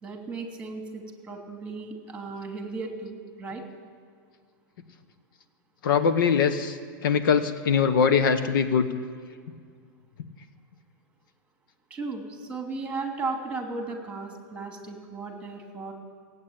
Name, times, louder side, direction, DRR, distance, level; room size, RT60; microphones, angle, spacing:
voice 1, 0.0-3.6 11.9-15.9, right 3 dB, 10° right, 3 dB, 2.7 m, -35 dB
voice 2, 5.8-8.9, left 6 dB, 70° left, 10 dB, 1.2 m, -22 dB
17.5 x 8.5 x 8.8 m, 2.1 s
hypercardioid pair, 140°, 12 cm